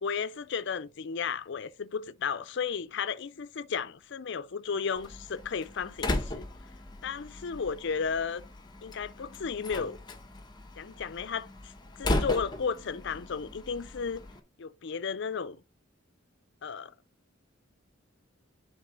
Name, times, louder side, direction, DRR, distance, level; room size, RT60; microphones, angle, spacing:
voice 1, 0.0-6.5 7.0-8.4 8.8-10.0 10.8-14.2 14.6-15.6 16.6-16.9, left 6 dB, 60° left, 0.5 m, -34 dB
Slam, 5.0-14.4, left 1 dB, 20° left, 0.9 m, -37 dB
10.0 x 3.7 x 3.8 m
head